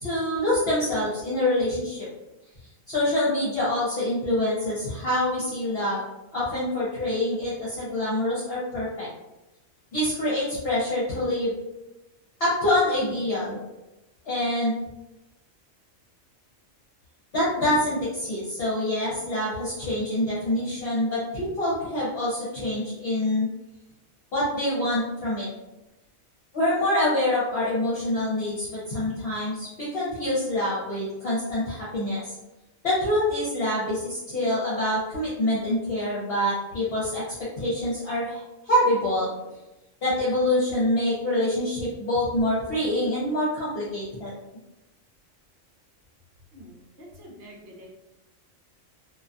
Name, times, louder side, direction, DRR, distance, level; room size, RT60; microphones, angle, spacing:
voice 1, 0.0-2.1 2.9-6.0 6.3-9.1 9.9-11.5 12.4-13.6 14.2-14.7 17.3-23.5 24.3-25.5 26.5-32.3 32.8-39.3 40.0-44.4, left 1 dB, 55° left, -9 dB, 0.9 m, -26 dB
voice 2, 46.5-47.9, equal, 55° right, -3 dB, 0.7 m, -46 dB
2.4 x 2.2 x 2.6 m, 0.96 s
omnidirectional pair, 1.3 m